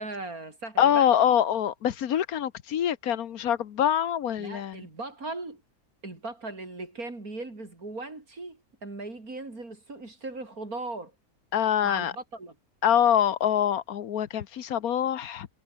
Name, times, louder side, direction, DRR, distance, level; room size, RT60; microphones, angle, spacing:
voice 1, 0.0-1.0 4.4-5.6 6.0-11.1 11.8-12.6, right 2 dB, 90° right, 5.5 m, -38 dB
voice 2, 0.8-4.9 11.5-12.1 12.8-15.5, left 9 dB, 90° left, 1.5 m, -25 dB
omnidirectional pair, 1.5 m